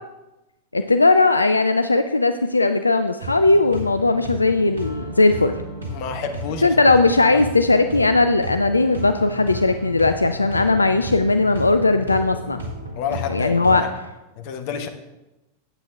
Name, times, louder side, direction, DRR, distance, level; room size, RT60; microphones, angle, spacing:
voice 1, 0.7-5.5 6.6-12.6 13.3-13.8, left 3 dB, 80° left, 9 dB, 0.3 m, -18 dB
sound 1, 3.2-13.8, equal, 75° right, 1.6 m, -34 dB
voice 2, 5.9-6.9 7.3-7.4 13.0-13.9 14.3-14.9, left 6 dB, 45° left, 6 dB, 1.0 m, -29 dB
9.0 x 8.1 x 3.4 m, 1.0 s
figure-of-eight pair, 90°, 0 cm